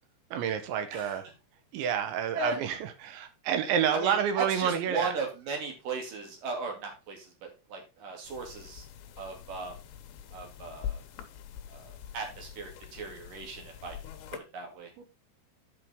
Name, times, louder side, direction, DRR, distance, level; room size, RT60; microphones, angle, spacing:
voice 1, 0.3-1.3 1.7-5.1 15.0-15.1, right 8 dB, 80° right, 8 dB, 3.7 m, -29 dB
voice 2, 3.9-8.9 9.2-9.8 10.3-11.0 11.7-14.0 14.3-14.9, right 4 dB, 50° right, 2 dB, 3.9 m, -36 dB
sound 1, 8.2-14.4, left 9 dB, 80° left, 3.3 m, -44 dB
11.5 x 5.7 x 3.7 m, 0.27 s
omnidirectional pair, 5.2 m